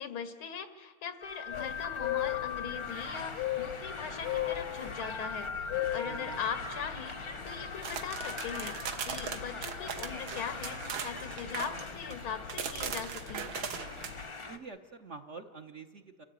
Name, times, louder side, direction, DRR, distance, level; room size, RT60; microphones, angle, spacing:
voice 1, 0.0-13.5, left 7 dB, 90° left, 11 dB, 2.4 m, -40 dB
sound 1, 1.2-14.6, left 4 dB, 35° left, 0.4 m, -41 dB
sound 2, 1.5-14.3, left 12 dB, 75° left, 1.7 m, -40 dB
voice 2, 6.0-6.4 14.4-16.2, right 4 dB, 50° right, 5 dB, 1.0 m, -47 dB
sound 3, 7.8-12.2 12.5-14.1, right 7 dB, 75° right, 1.9 m, -39 dB
29.0 x 14.5 x 9.1 m, 1.5 s
omnidirectional pair, 2.2 m